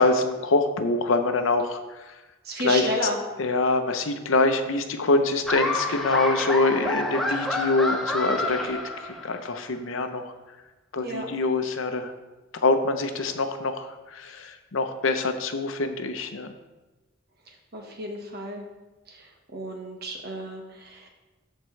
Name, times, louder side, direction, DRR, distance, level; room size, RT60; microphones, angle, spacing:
voice 1, 0.0-2.2 2.6-2.9 3.4-8.8 9.2-10.3 10.9-12.1 12.6-16.5, left 3 dB, 80° left, 7 dB, 0.7 m, -25 dB
voice 2, 2.4-3.2 11.0-11.2 17.5-18.6 19.1-21.1, right 1 dB, 50° right, 1 dB, 1.3 m, -32 dB
Laughter, 5.5-9.5, left 2 dB, ahead, 0.7 m, -28 dB
13.0 x 4.5 x 3.2 m, 1.1 s
head